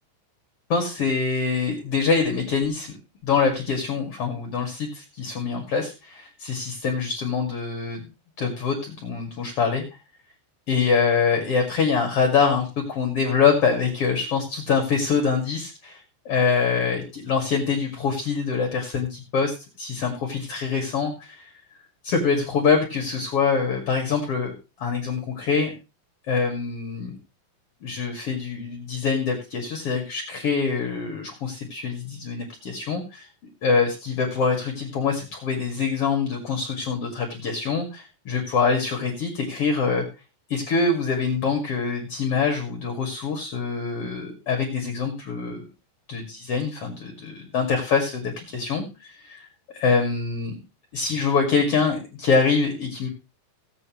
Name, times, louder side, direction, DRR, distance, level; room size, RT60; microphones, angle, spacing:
voice 1, 0.7-2.9 3.2-8.1 8.4-9.8 10.7-21.5 22.0-25.7 26.3-27.2 27.8-33.3 33.6-40.1 40.5-45.6 46.1-49.5 49.7-50.6 50.9-53.1, left 5 dB, 45° left, 2 dB, 2.5 m, -24 dB
18.0 x 8.1 x 3.1 m, 0.29 s
omnidirectional pair, 4.8 m